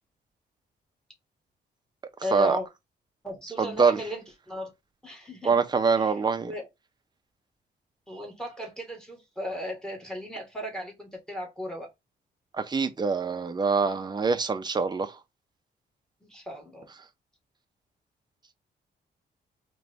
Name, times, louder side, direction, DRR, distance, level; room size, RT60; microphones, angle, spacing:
voice 1, 2.2-2.7 3.2-4.7 5.0-5.5 6.0-6.1 6.4-6.7 8.1-11.9 16.2-16.9, left 1 dB, 5° left, 1.7 m, -36 dB
voice 2, 3.6-4.0 5.4-6.5 12.5-15.2, right 5 dB, 25° right, 0.6 m, -24 dB
3.8 x 3.1 x 3.5 m
cardioid pair, 120°, 18 cm